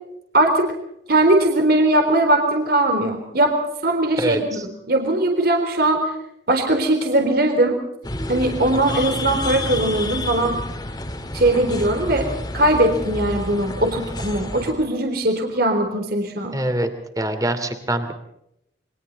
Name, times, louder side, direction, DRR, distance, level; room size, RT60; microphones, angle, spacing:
voice 1, 0.3-0.7 1.1-3.6 3.8-6.1 6.5-7.8 8.3-10.6 11.3-12.3 12.5-16.5, right 1 dB, 55° right, 3 dB, 3.9 m, -20 dB
sound 1, 8.0-14.7, left 1 dB, 20° left, 2.6 m, -29 dB
voice 2, 16.5-16.9 17.2-18.1, right 1 dB, 20° right, 8 dB, 2.8 m, -23 dB
29.0 x 23.5 x 4.1 m, 0.78 s
head